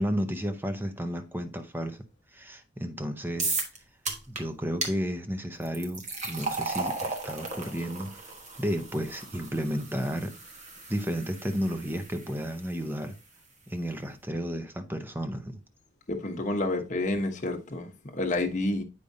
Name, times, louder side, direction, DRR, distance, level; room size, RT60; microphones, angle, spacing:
voice 1, 0.0-2.0 2.3-3.6 4.3-8.3 8.6-10.3 10.9-13.1 13.7-15.5, equal, 10° right, 0.7 m, -32 dB
sound 1, 3.4-3.8 4.1-4.4 4.8-4.9 5.6-12.7, right 3 dB, 40° right, 1.2 m, -35 dB
voice 2, 16.1-18.8, left 2 dB, 40° left, 1.1 m, -29 dB
8.3 x 5.0 x 2.7 m
head